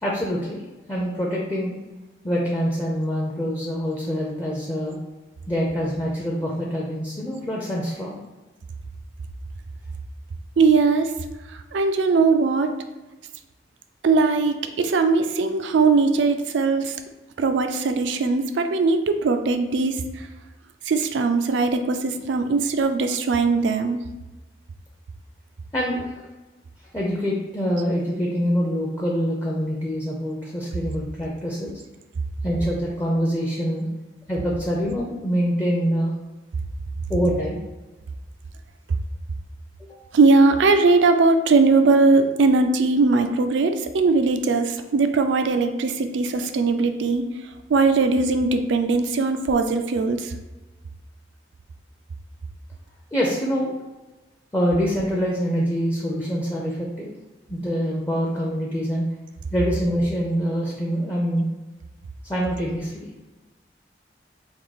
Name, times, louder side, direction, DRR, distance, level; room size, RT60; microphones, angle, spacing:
voice 1, 0.0-0.6 0.9-1.8 2.2-5.0 5.5-8.2 25.7-26.3 26.9-31.8 32.4-33.9 34.3-36.1 37.1-37.6 39.8-40.0 53.1-53.7 54.5-57.1 57.5-59.0 59.5-61.5 62.2-63.1, equal, 15° left, -4 dB, 0.5 m, -25 dB
voice 2, 10.6-11.1 11.5-12.7 14.0-17.0 17.4-20.3 20.9-24.0 40.1-47.3 47.7-50.3, right 3 dB, 85° right, 7 dB, 0.4 m, -20 dB
3.6 x 2.7 x 4.0 m, 1.1 s
head